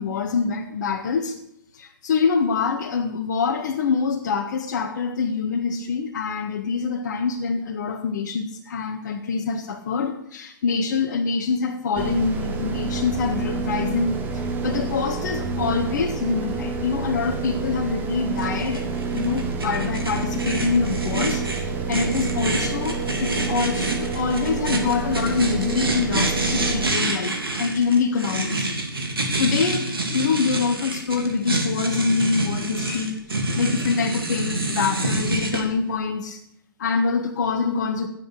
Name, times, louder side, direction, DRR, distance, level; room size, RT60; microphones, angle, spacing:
voice 1, 0.0-1.3 1.7-18.8 19.1-28.7 29.4-36.4 36.8-38.1, left 5 dB, 50° left, 2 dB, 1.6 m, -25 dB
sound 1, 11.9-26.9, right 4 dB, 15° right, 1.4 m, -28 dB
sound 2, 18.4-35.6, right 2 dB, 85° right, 3.4 m, -27 dB
12.5 x 9.8 x 6.5 m, 0.75 s
hypercardioid pair, 135°, 12 cm